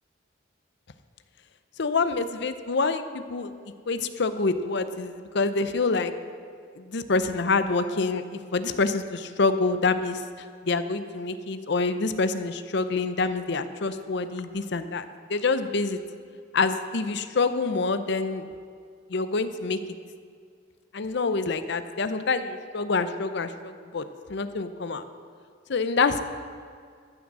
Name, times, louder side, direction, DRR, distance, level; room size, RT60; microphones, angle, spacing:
voice 1, 1.8-3.5 3.9-6.1 6.8-16.0 16.5-18.5 19.1-19.8 20.9-24.0 24.3-25.0 25.7-26.2, left 3 dB, 65° left, 11 dB, 0.7 m, -26 dB
13.5 x 6.2 x 7.3 m, 2.1 s
head